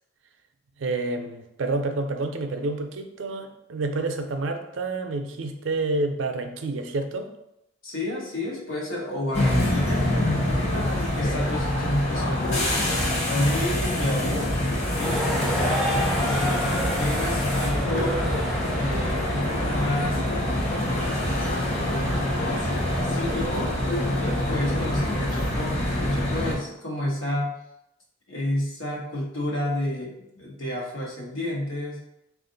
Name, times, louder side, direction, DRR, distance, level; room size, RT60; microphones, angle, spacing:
voice 1, 0.8-7.3, right 2 dB, 65° right, 6 dB, 0.4 m, -29 dB
voice 2, 7.8-12.8 13.3-14.5 14.9-18.3 18.7-20.2 20.8-23.8 24.2-27.5 28.3-32.0, left 1 dB, 85° left, -3 dB, 1.1 m, -30 dB
sound 1, 9.3-26.6, left 1 dB, 35° left, 0.8 m, -25 dB
sound 2, 15.0-20.2, equal, ahead, 0.4 m, -31 dB
3.6 x 2.5 x 3.8 m, 0.84 s
head